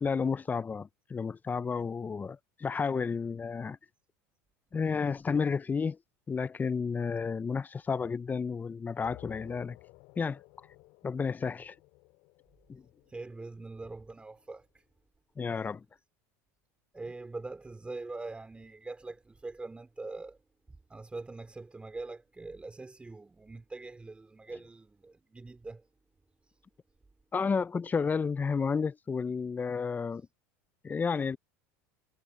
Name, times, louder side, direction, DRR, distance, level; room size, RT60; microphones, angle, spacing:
voice 1, 0.0-3.8 4.7-6.0 6.3-9.8 10.2-10.4 11.0-11.7 12.7-12.8 15.4-15.8 27.3-30.2 30.8-31.4, left 5 dB, 20° left, 0.7 m, -31 dB
sound 1, 9.0-14.4, left 23 dB, 65° left, 3.9 m, -55 dB
voice 2, 13.1-14.7 16.9-20.4 20.9-25.8, right 3 dB, 15° right, 2.9 m, -43 dB
hypercardioid pair, 95°, 8 cm